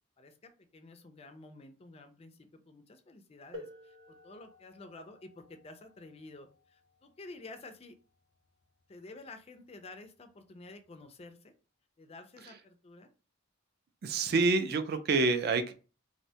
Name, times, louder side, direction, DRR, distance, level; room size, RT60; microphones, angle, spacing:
voice 1, 0.2-8.0 8.9-11.5 12.0-13.1, left 2 dB, 30° left, 7 dB, 0.4 m, -51 dB
sound 1, 3.5-9.0 10.0-10.1 10.9-11.2, left 1 dB, 25° right, 0.8 m, -53 dB
voice 2, 14.0-15.7, right 3 dB, 50° right, 9 dB, 0.4 m, -27 dB
2.5 x 2.1 x 2.7 m, 0.34 s
head